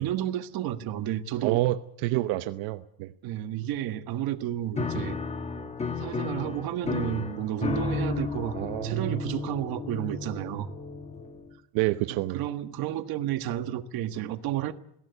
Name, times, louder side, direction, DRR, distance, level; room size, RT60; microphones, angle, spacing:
voice 1, 0.0-1.6 3.2-5.2 6.0-10.7 12.1-14.7, right 12 dB, 50° right, 9 dB, 1.6 m, -31 dB
voice 2, 1.4-3.1 8.5-9.2 11.7-12.4, right 17 dB, 85° right, 10 dB, 1.0 m, -28 dB
Piano, 4.8-11.5, left 4 dB, 15° left, 1.2 m, -33 dB
21.0 x 17.0 x 9.7 m, 0.76 s
cardioid pair, 175°, 45 cm